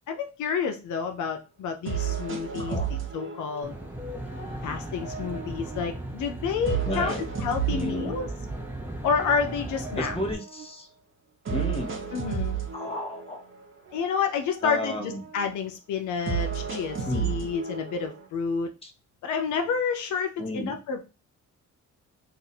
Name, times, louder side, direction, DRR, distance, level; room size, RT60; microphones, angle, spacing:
voice 1, 0.1-3.7 4.6-7.1 7.4-8.3 9.0-10.2 12.1-12.6 13.9-18.7 19.2-21.1, left 6 dB, 75° left, 5 dB, 0.6 m, -29 dB
sound 1, 1.2-1.3 1.9-3.9 4.3-6.1 6.7-8.6 9.1-10.9 11.5-13.6 13.9-15.6 16.3-18.2, right 7 dB, 40° right, 0.9 m, -33 dB
voice 2, 2.3-2.9 6.8-7.2 7.7-8.2 10.0-10.9 11.5-12.0 12.7-13.4 14.6-15.2 17.1-17.3 18.8-18.9 20.4-20.8, left 1 dB, 20° left, 2 dB, 1.0 m, -33 dB
Aircraft, 3.6-10.3, right 1 dB, 5° right, 0.7 m, -37 dB
2.7 x 2.4 x 4.2 m, 0.30 s
cardioid pair, 90°, 30 cm